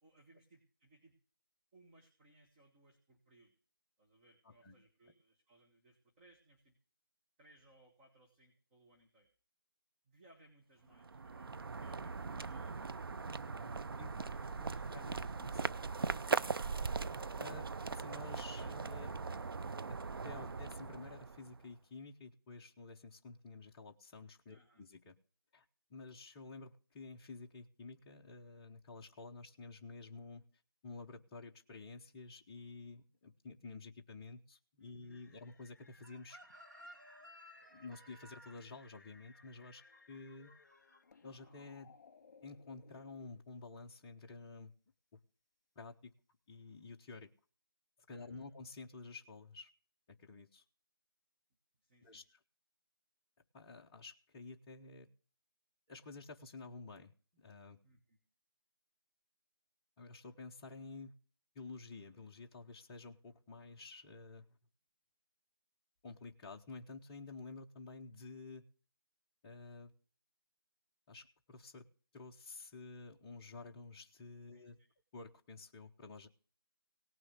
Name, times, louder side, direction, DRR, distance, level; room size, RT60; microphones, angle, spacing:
voice 1, 0.0-1.2 1.7-3.5 4.0-6.8 7.4-9.3 10.0-12.9 13.5-14.8 15.1-15.3 24.5-24.9 34.8-35.4 48.1-48.5 51.8-52.2 57.8-58.2 74.5-74.9, right 2 dB, 20° right, 0 dB, 1.9 m, -66 dB
sound 1, 10.9-21.7, right 4 dB, 65° right, 0.6 m, -40 dB
voice 2, 14.6-15.5 17.4-19.1 19.9-20.0 20.2-25.2 25.5-25.6 25.9-30.4 30.8-36.4 37.7-39.8 40.1-40.5 41.2-41.9 42.4-44.7 45.1-45.2 45.8-46.1 46.5-47.3 48.1-49.7 50.1-50.6 52.0-52.2 53.5-55.1 55.9-57.8 60.0-61.1 61.5-64.5 66.0-68.6 69.4-69.9 71.1-71.9 72.1-74.8 75.1-76.3, left 3 dB, 15° left, -1 dB, 0.8 m, -51 dB
sound 2, 35.1-43.4, left 4 dB, 45° left, 3.3 m, -64 dB
Chicken rooster, 36.0-41.0 41.3-41.6, right 1 dB, 50° right, 2.6 m, -58 dB
18.0 x 6.2 x 8.0 m, 0.40 s
figure-of-eight pair, 160°, 13 cm